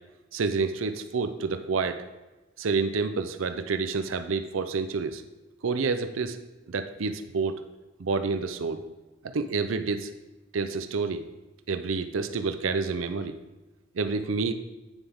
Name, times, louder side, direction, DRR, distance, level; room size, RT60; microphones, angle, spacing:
voice 1, 0.3-2.0 2.6-5.2 5.6-6.4 6.7-7.6 8.0-8.8 9.2-10.1 10.5-11.2 11.7-13.3 13.9-14.5, right 4 dB, 80° right, 9 dB, 0.5 m, -28 dB
9.0 x 7.1 x 3.5 m, 1.1 s
head